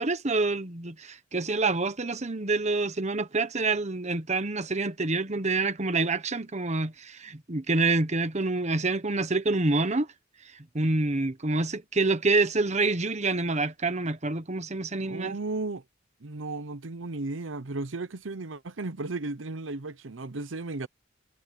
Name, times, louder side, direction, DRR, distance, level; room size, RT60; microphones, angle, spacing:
voice 1, 0.0-10.1 10.5-15.4, right 3 dB, 35° right, 1.2 m, -27 dB
voice 2, 15.0-15.8 16.2-20.9, right 3 dB, 80° right, 0.9 m, -35 dB
head